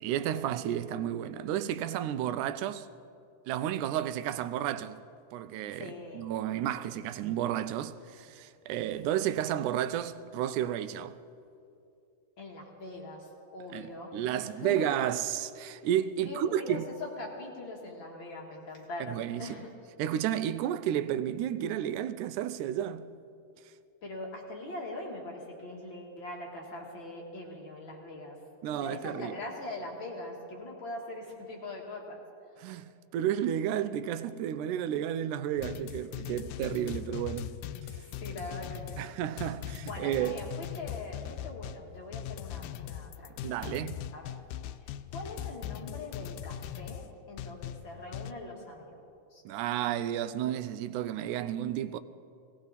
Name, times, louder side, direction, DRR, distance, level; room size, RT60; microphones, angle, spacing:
voice 1, 0.0-2.9 3.5-5.0 5.3-11.2 13.7-16.9 19.1-19.4 20.0-23.1 28.6-29.3 32.6-37.6 39.0-40.4 43.4-44.0 49.5-52.0, right 11 dB, 90° right, 2.0 m, -32 dB
voice 2, 5.7-6.3 12.4-14.9 16.2-19.7 24.0-28.4 28.8-32.2 38.0-39.0 39.8-43.8 44.1-44.4 44.8-49.0 49.3-49.4, left 2 dB, 45° left, 2.2 m, -42 dB
sound 1, 35.6-48.3, left 11 dB, 85° left, 2.0 m, -40 dB
19.0 x 17.5 x 4.1 m
omnidirectional pair, 3.5 m